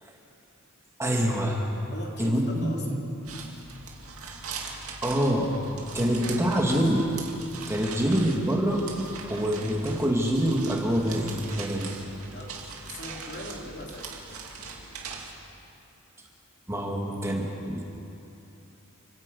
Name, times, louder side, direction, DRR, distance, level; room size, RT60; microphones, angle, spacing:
voice 1, 1.0-1.6 2.2-3.0 5.0-5.5 5.9-7.0 7.7-8.8 9.3-12.0 16.7-17.8, equal, 15° right, -1 dB, 2.1 m, -25 dB
voice 2, 1.9-2.8 5.9-6.6 7.8-8.1 12.3-14.2, left 1 dB, 50° left, -1 dB, 3.2 m, -41 dB
sound 1, 3.2-15.3, right 4 dB, 80° right, 2.4 m, -41 dB
30.0 x 10.5 x 8.4 m, 2.8 s
head